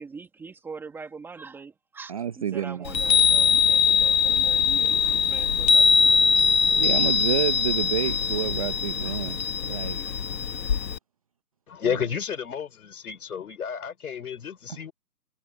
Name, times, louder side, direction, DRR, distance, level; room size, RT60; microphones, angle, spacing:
voice 1, 0.0-6.3, right 4 dB, 5° right, 1.7 m, -43 dB
voice 2, 2.1-2.8 4.8-4.9 6.8-10.0 11.8-12.0 14.7-14.8, right 8 dB, 20° right, 0.8 m, -29 dB
Chime, 2.9-11.0, left 6 dB, 80° left, 1.3 m, -22 dB
voice 3, 11.7-14.9, left 7 dB, 60° left, 4.3 m, -31 dB
hypercardioid pair, 160°, 50 cm